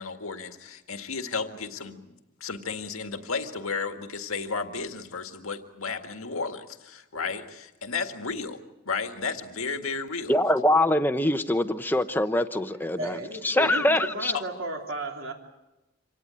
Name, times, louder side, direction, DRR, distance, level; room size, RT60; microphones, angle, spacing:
voice 1, 0.0-2.1 2.4-10.3 14.3-14.4, left 4 dB, 90° left, 6 dB, 1.9 m, -33 dB
voice 2, 10.3-13.2 13.4-14.3, left 1 dB, 10° left, 9 dB, 0.8 m, -23 dB
voice 3, 13.0-15.3, right 1 dB, 75° right, 1 dB, 3.5 m, -34 dB
26.0 x 18.0 x 8.9 m, 0.99 s
head